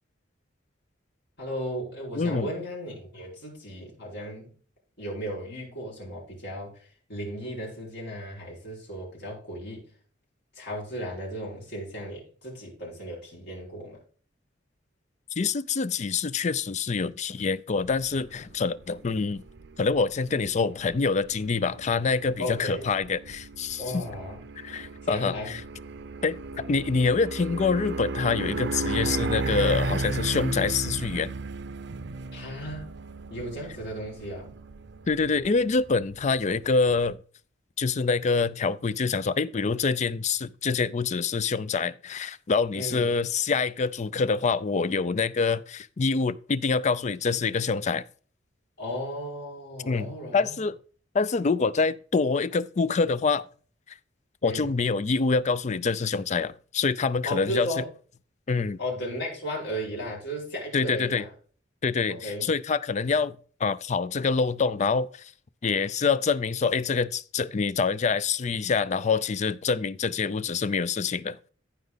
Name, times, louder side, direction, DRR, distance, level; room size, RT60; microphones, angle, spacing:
voice 1, 1.4-4.5 5.0-6.7 7.1-9.9 10.6-14.0 22.4-22.9 23.8-24.4 25.0-25.5 32.3-33.0 33.3-34.5 42.7-43.1 48.8-50.6 54.4-54.7 57.3-57.9 58.8-61.3 62.1-62.5, equal, 60° left, 5.2 m, -35 dB
voice 2, 2.2-2.5 15.4-19.4 19.8-24.0 24.6-25.6 26.2-31.3 35.1-37.2 37.8-48.0 49.9-50.8 51.1-53.4 54.4-57.7 58.5-58.8 60.7-61.2 61.8-65.3 65.6-71.5, left 4 dB, 40° left, 0.4 m, -26 dB
sound 1, 17.8-37.1, right 3 dB, 65° right, 0.6 m, -35 dB
15.0 x 5.0 x 3.9 m
head